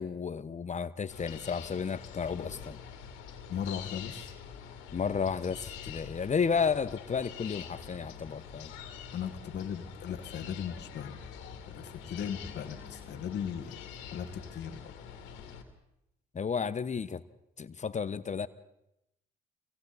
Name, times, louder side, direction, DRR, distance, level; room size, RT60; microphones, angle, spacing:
voice 1, 0.0-2.8 4.9-8.7 16.3-17.2 17.6-18.5, left 6 dB, 40° left, 13 dB, 1.1 m, -32 dB
sound 1, 1.1-15.6, left 7 dB, 80° left, 2.5 m, -45 dB
voice 2, 3.5-4.3 9.1-11.2 11.7-13.8 14.1-14.9, left 8 dB, 60° left, 7 dB, 1.9 m, -37 dB
29.0 x 23.5 x 4.3 m, 0.84 s
hypercardioid pair, 55°, 20 cm